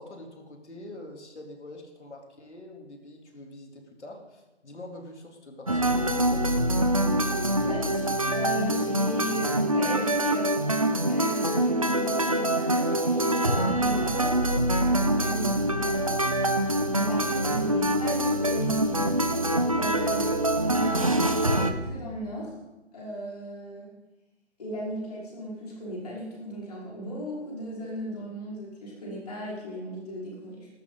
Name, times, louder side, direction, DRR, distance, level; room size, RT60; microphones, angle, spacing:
voice 1, 0.0-6.8 20.0-20.3, left 1 dB, 75° left, 0 dB, 3.6 m, -45 dB
sound 1, 5.7-21.7, right 1 dB, 30° right, 0.6 m, -25 dB
voice 2, 7.6-10.5 11.1-14.3 14.8-16.2 16.9-19.0 19.7-20.2 20.5-22.5 22.9-23.9 24.6-30.7, equal, 35° left, -5 dB, 5.2 m, -37 dB
sound 2, 14.2-21.9, right 2 dB, 15° left, 5.8 m, -39 dB
18.5 x 13.0 x 4.1 m, 1.1 s
hypercardioid pair, 175°, 34 cm